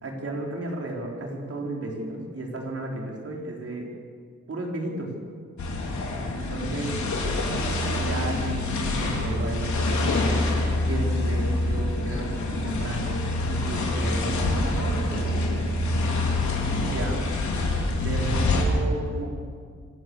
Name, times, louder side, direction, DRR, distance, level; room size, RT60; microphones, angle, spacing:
voice 1, 0.0-3.9 4.5-5.1 6.3-7.0 8.0-10.6 10.9-13.2 13.5-15.6 16.8-17.3 18.0-19.3, right 2 dB, 50° right, 0 dB, 4.6 m, -33 dB
sound 1, 5.6-18.6, left 2 dB, 75° left, 4.2 m, -26 dB
26.0 x 16.5 x 7.3 m, 2.1 s
wide cardioid pair, 125°, 29 cm